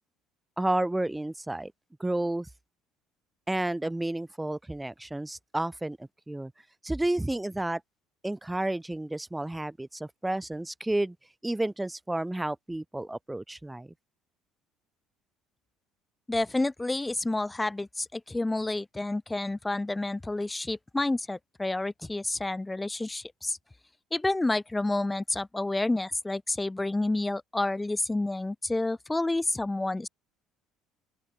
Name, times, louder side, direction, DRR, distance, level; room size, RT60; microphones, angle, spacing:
voice 1, 0.6-1.7 2.0-2.5 3.5-6.5 6.8-7.8 8.2-11.2 11.4-13.9, right 1 dB, 10° right, 2.6 m, -31 dB
voice 2, 16.3-23.6 24.1-30.1, left 2 dB, 15° left, 0.9 m, -29 dB
open air
hypercardioid pair, 60°, 0 cm